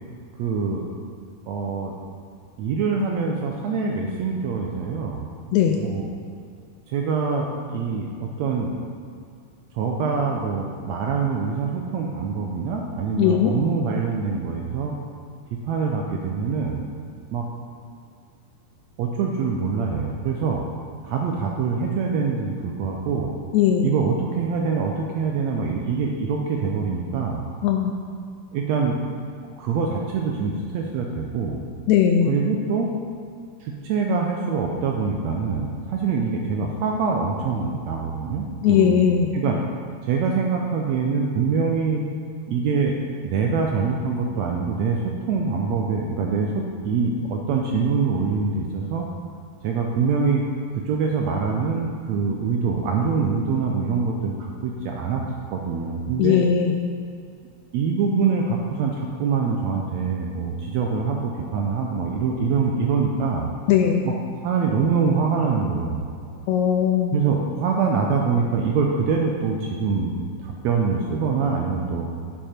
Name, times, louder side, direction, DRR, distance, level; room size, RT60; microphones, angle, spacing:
voice 1, 0.4-0.8 1.5-1.9 2.6-5.2 5.8-6.1 6.9-8.7 9.7-14.9 15.5-16.8 17.3-17.5 19.0-20.6 21.0-23.3 23.8-27.4 28.5-29.0 29.6-31.6 32.3-32.9 33.6-39.0 39.3-39.6 40.1-42.0 42.5-42.9 43.2-49.1 49.6-50.4 50.7-55.2 55.5-56.4 57.7-63.5 64.4-66.1 67.1-72.1, right 5 dB, 85° right, 0 dB, 1.5 m, -24 dB
voice 2, 5.5-5.8 13.2-13.5 23.5-23.9 27.6-28.1 31.9-32.3 38.6-39.3 56.2-56.7 63.7-64.1 66.5-67.2, left 8 dB, 85° left, 3 dB, 1.6 m, -19 dB
10.0 x 6.7 x 4.4 m, 2.3 s
omnidirectional pair, 3.8 m